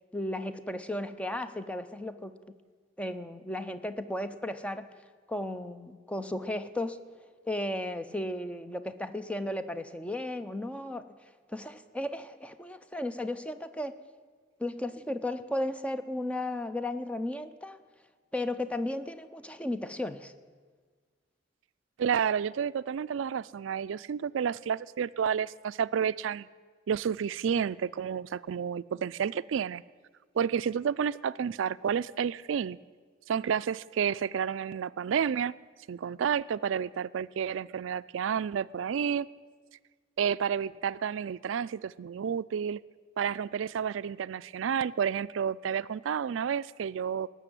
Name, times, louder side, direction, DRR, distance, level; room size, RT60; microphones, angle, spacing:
voice 1, 0.1-2.5 3.0-4.9 5.3-7.0 7.5-11.1 11.5-14.0 14.6-17.8 18.3-20.3, left 1 dB, 5° left, 11 dB, 0.6 m, -35 dB
voice 2, 22.0-26.5 26.9-29.8 30.4-32.8 33.3-35.6 35.9-39.3 40.2-42.8 43.2-47.3, right 7 dB, 80° right, 17 dB, 0.4 m, -30 dB
18.0 x 6.9 x 9.1 m, 1.5 s
head